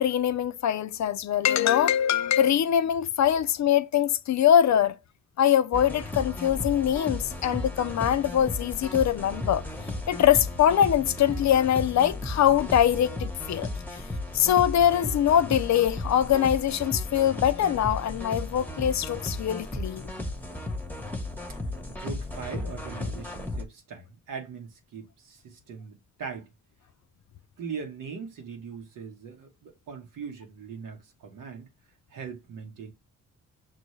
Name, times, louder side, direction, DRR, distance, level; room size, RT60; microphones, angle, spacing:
voice 1, 0.0-5.0 5.4-9.6 10.1-13.7 14.3-20.1, left 10 dB, 60° left, 0.5 m, -23 dB
sound 1, 5.7-23.6, left 2 dB, 5° left, 0.9 m, -35 dB
voice 2, 21.5-26.5 27.6-31.7 32.1-32.9, right 6 dB, 90° right, 1.1 m, -40 dB
6.0 x 2.3 x 3.1 m
cardioid pair, 65°, 31 cm